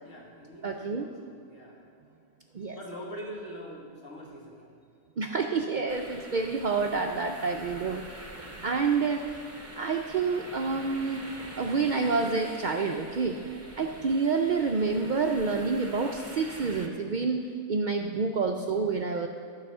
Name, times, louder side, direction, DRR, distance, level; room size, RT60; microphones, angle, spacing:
voice 1, 0.0-1.9 2.7-4.6 13.6-14.0, equal, 70° left, -2 dB, 1.7 m, -44 dB
voice 2, 0.6-1.1 2.5-2.8 5.2-9.2 9.5-11.3 11.6-17.4 17.7-19.3, right 4 dB, 75° right, 3 dB, 0.4 m, -28 dB
sound 1, 5.9-16.9, right 1 dB, 15° right, 0.6 m, -45 dB
12.0 x 4.9 x 6.5 m, 2.4 s
omnidirectional pair, 1.4 m